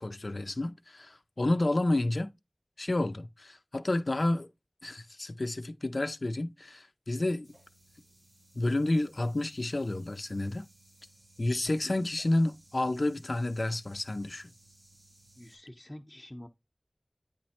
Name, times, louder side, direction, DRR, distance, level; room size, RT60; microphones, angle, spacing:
voice 1, 0.0-2.3 2.8-4.5 4.8-7.5 8.6-10.7 11.4-14.5, left 2 dB, 85° left, 0.5 m, -30 dB
sound 1, 7.4-15.6, right 1 dB, 85° right, 3.0 m, -60 dB
voice 2, 15.4-16.5, left 1 dB, 25° left, 0.7 m, -47 dB
9.1 x 3.1 x 4.3 m
wide cardioid pair, 40°, 0 cm